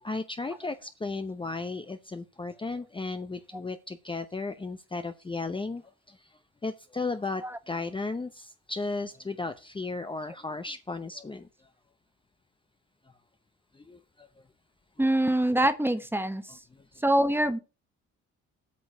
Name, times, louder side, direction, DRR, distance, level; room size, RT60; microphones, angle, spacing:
voice 1, 0.0-5.8 6.1-6.3 6.6-11.5 13.7-14.3 15.0-15.1 16.9-17.0, left 3 dB, 15° left, 0.8 m, -35 dB
voice 2, 15.0-16.5 17.0-17.6, right 1 dB, 5° right, 1.2 m, -24 dB
8.5 x 5.1 x 7.6 m
cardioid pair, 90°, 30 cm